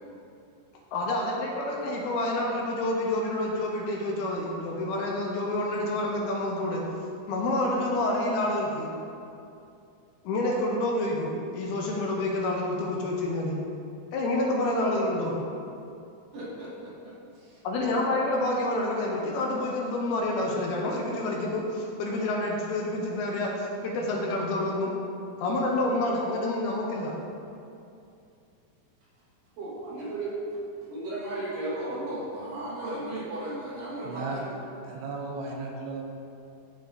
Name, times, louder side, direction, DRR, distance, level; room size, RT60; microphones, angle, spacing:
voice 1, 0.9-6.8 7.3-8.9 10.2-13.6 14.1-15.4 17.6-24.9 25.4-27.1, left 1 dB, 80° left, -2 dB, 2.6 m, -28 dB
voice 2, 16.3-17.6 29.6-30.4 30.9-34.5, right 1 dB, 65° right, -7 dB, 2.8 m, -35 dB
voice 3, 34.0-34.5 34.8-36.0, right 3 dB, 85° right, 0 dB, 2.9 m, -35 dB
13.0 x 4.6 x 2.7 m, 2.6 s
omnidirectional pair, 4.8 m